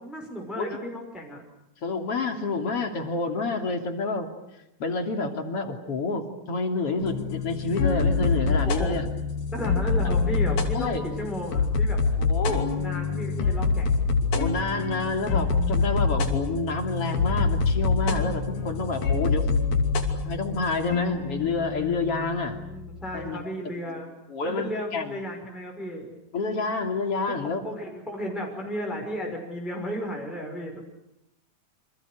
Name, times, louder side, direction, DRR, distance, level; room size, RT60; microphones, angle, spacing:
voice 1, 0.0-1.4 8.5-8.9 9.5-12.0 12.7-13.9 22.6-24.1 24.4-26.1 27.6-30.8, equal, ahead, 0 dB, 5.6 m, -34 dB
voice 2, 1.8-4.3 4.8-9.1 10.7-11.0 12.2-12.7 14.3-19.5 20.1-22.6 23.1-24.0 24.3-25.1 26.3-27.6, left 3 dB, 40° left, 5 dB, 3.6 m, -29 dB
sound 1, 7.0-23.3, left 4 dB, 70° left, 4.6 m, -26 dB
29.0 x 27.5 x 6.5 m, 0.88 s
omnidirectional pair, 4.3 m